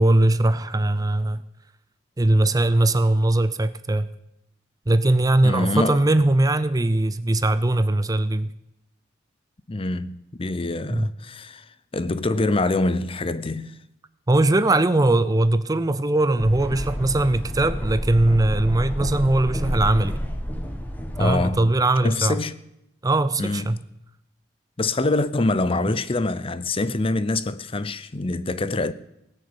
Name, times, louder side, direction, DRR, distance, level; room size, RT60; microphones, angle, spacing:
voice 1, 0.0-1.4 2.2-4.1 4.9-8.5 10.9-11.1 14.3-20.2 21.2-22.4 23.0-23.8, right 2 dB, 20° right, 0.5 m, -20 dB
voice 2, 5.4-6.0 9.7-11.6 11.9-13.8 21.2-21.7 22.0-22.5 23.4-23.8 24.8-28.9, left 2 dB, 30° left, 0.6 m, -25 dB
sound 1, 16.4-21.5, equal, 10° left, 1.5 m, -29 dB
18.5 x 6.6 x 8.7 m
head